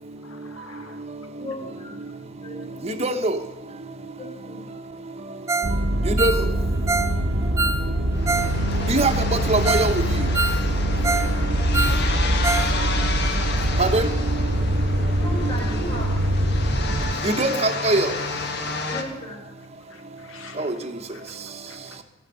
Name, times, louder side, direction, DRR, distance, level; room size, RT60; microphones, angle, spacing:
voice 1, 0.2-1.0 19.9-20.7 21.1-21.4 21.7-22.0, left 4 dB, 75° left, 6 dB, 1.4 m, -47 dB
voice 2, 1.4-2.0 2.4-3.1 4.2-4.7 11.9-12.7 15.1-16.2 18.9-19.4, left 1 dB, 30° left, -8 dB, 4.9 m, -37 dB
voice 3, 2.8-3.4 6.0-6.5 8.9-10.0 13.8-14.1 15.7-15.8 17.2-18.1 20.6-20.7, right 2 dB, 30° right, 7 dB, 1.1 m, -22 dB
Ringtone, 5.5-5.8 6.0-8.5 8.8-8.9 9.4-9.5 9.7-9.9 10.2-11.3 11.6-12.7 13.0-13.1 13.5-13.6, right 3 dB, 15° right, 0.6 m, -26 dB
sound 1, 5.6-17.1, right 1 dB, 60° right, 1.1 m, -23 dB
sound 2, 8.1-19.0, left 3 dB, 50° left, 1.5 m, -30 dB
15.5 x 11.5 x 6.8 m, 0.97 s
head